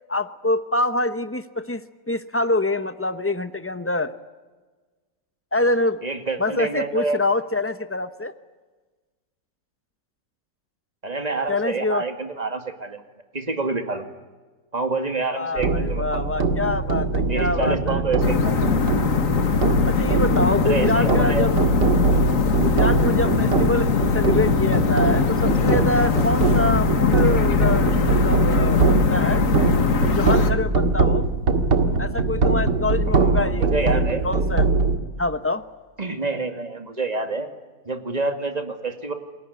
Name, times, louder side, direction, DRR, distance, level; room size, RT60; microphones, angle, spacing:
voice 1, 0.1-4.1 5.5-6.0 6.4-8.3 11.5-12.0 15.3-18.0 19.9-21.5 22.6-28.0 28.2-29.4 30.1-31.2 32.0-34.7 35.2-35.6, left 2 dB, 10° left, 11 dB, 0.6 m, -25 dB
voice 2, 6.0-7.2 11.0-13.0 13.3-14.1 14.7-16.5 17.3-18.8 20.6-21.5 33.1-34.2 36.0-37.5 37.9-39.1, right 3 dB, 20° right, 7 dB, 2.3 m, -27 dB
sound 1, 15.6-35.0, right 3 dB, 70° right, 2.4 m, -22 dB
sound 2, 18.2-30.5, left 6 dB, 50° left, 1.8 m, -21 dB
29.0 x 20.5 x 9.6 m, 1.3 s
omnidirectional pair, 1.9 m